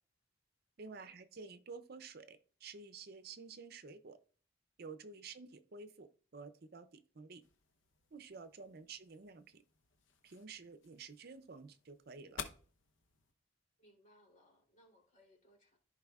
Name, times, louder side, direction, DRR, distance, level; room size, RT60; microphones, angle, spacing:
voice 1, 0.8-4.2 4.8-7.4 8.1-9.6 10.2-12.4, right 4 dB, 50° right, 11 dB, 0.6 m, -51 dB
voice 2, 5.0-5.4 8.7-8.9 13.8-15.8, equal, 40° left, -1 dB, 3.1 m, -67 dB
sound 1, 7.4-13.3, left 6 dB, 75° left, 0.9 m, -53 dB
14.0 x 4.7 x 2.4 m, 0.42 s
head